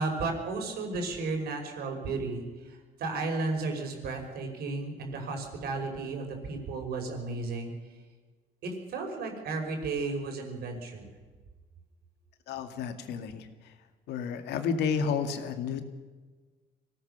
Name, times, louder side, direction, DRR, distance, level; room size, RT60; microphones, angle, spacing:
voice 1, 0.0-7.7 8.6-11.1, right 3 dB, 70° right, 3 dB, 5.7 m, -33 dB
voice 2, 12.5-13.7 14.1-15.8, left 6 dB, 80° left, 7 dB, 2.2 m, -31 dB
24.0 x 17.5 x 6.9 m, 1.4 s
cardioid pair, 110°, 17 cm